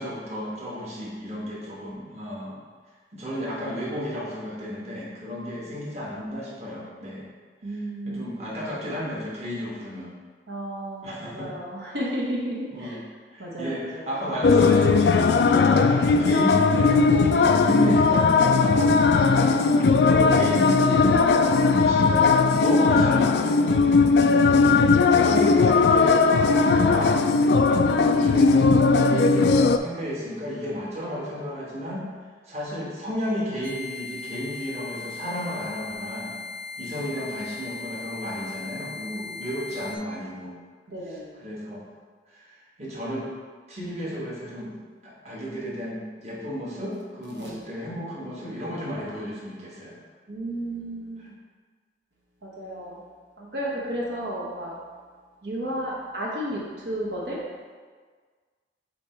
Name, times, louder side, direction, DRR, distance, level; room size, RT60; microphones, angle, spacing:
voice 1, 0.0-2.6 3.1-7.3 7.6-10.1 11.0-11.5 12.7-13.0 13.3-15.4 15.7-19.0 19.6-23.9 24.5-27.2 27.8-28.7 29.0-32.1 32.5-36.3 36.8-40.6 41.1-41.8 42.3-43.3 43.7-44.7 45.0-50.0 51.2-51.3, equal, 35° right, -6 dB, 1.4 m, -33 dB
voice 2, 7.6-8.2 10.5-13.0 13.4-14.1 15.6-15.9 19.2-19.6 24.2-24.8 25.0-25.4 39.1-39.4 40.9-41.3 47.4-47.6 50.3-51.3 52.4-53.0 53.4-54.8 55.4-57.4, right 1 dB, 70° right, -5 dB, 1.2 m, -33 dB
sound 1, 14.4-29.8, left 4 dB, 65° left, 0.3 m, -18 dB
sound 2, 33.6-40.0, left 4 dB, 55° right, 0.7 m, -38 dB
8.5 x 2.9 x 4.5 m, 1.5 s
head